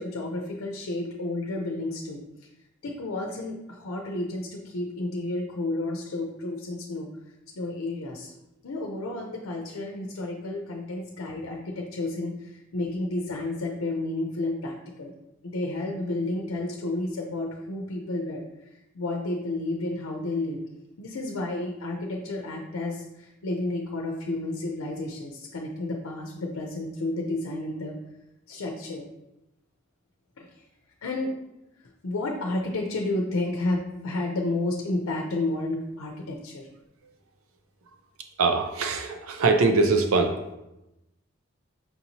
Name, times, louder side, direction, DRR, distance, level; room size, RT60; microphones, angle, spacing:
voice 1, 0.0-2.2 2.8-7.1 7.6-8.3 8.6-15.1 15.4-18.4 18.9-20.6 21.0-28.0 28.5-29.1 30.4-30.5 31.0-31.3 32.0-36.7, left 2 dB, 85° left, 0 dB, 0.6 m, -31 dB
voice 2, 38.4-40.4, right 3 dB, 85° right, 5 dB, 0.5 m, -22 dB
5.6 x 2.9 x 2.7 m, 0.91 s
head